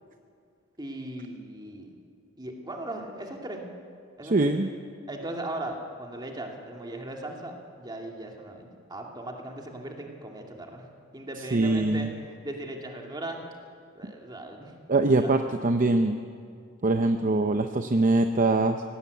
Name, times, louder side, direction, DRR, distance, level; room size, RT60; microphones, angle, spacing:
voice 1, 0.8-1.9 2.4-3.7 4.2-4.5 5.1-10.9 11.1-13.4 13.9-14.7 15.2-15.3, right 1 dB, 20° right, 1 dB, 2.4 m, -38 dB
voice 2, 4.2-4.7 11.5-12.1 14.0-14.1 14.9-16.2 16.8-18.8, right 2 dB, 40° right, 6 dB, 0.7 m, -23 dB
19.0 x 17.0 x 8.2 m, 2.3 s
head